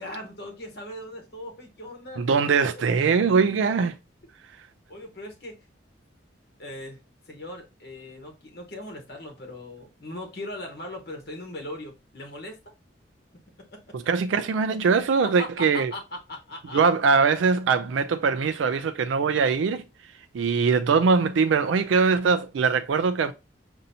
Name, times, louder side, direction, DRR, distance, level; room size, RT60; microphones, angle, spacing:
voice 1, 0.0-2.2 4.9-5.6 6.6-7.0 7.3-12.6 13.7-13.8 14.9-16.0 16.3-16.8, left 1 dB, 60° left, 1.0 m, -39 dB
voice 2, 2.2-4.0 13.9-15.9 16.7-19.8 20.3-23.3, right 5 dB, 85° right, 0.4 m, -22 dB
5.4 x 2.7 x 2.7 m
head